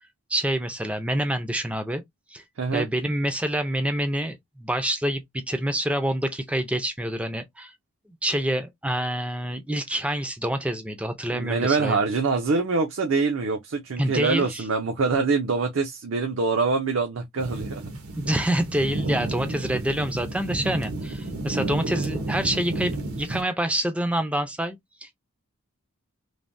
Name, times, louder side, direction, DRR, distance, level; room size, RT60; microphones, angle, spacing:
voice 1, 0.3-2.0 2.3-2.4 2.7-7.7 8.2-12.0 14.0-14.6 18.2-25.1, right 1 dB, 5° right, 0.4 m, -27 dB
voice 2, 11.3-17.8, right 4 dB, 65° right, 0.5 m, -24 dB
sound 1, 17.4-23.4, right 2 dB, 80° right, 0.9 m, -31 dB
3.2 x 2.1 x 2.6 m
head